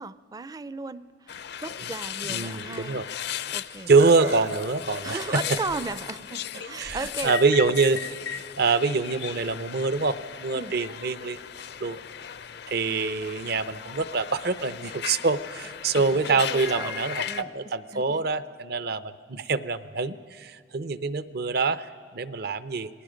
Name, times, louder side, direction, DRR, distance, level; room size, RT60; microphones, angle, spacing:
voice 1, 0.0-3.0 3.5-3.9 5.0-7.4 10.5-10.8 16.3-17.0 17.3-17.5 17.9-18.3, right 3 dB, 20° right, 15 dB, 0.4 m, -36 dB
sound 1, 1.3-17.4, left 9 dB, 65° left, 0.5 m, -36 dB
voice 2, 2.2-3.1 3.9-5.4 6.8-11.4 11.8-12.0 12.7-22.9, right 4 dB, 60° right, 13 dB, 0.7 m, -25 dB
Laughter, 4.0-6.1 6.6-7.2 7.7-7.8 8.8-8.9, right 3 dB, 85° right, 2.8 m, -37 dB
28.0 x 19.5 x 5.1 m, 2.3 s
head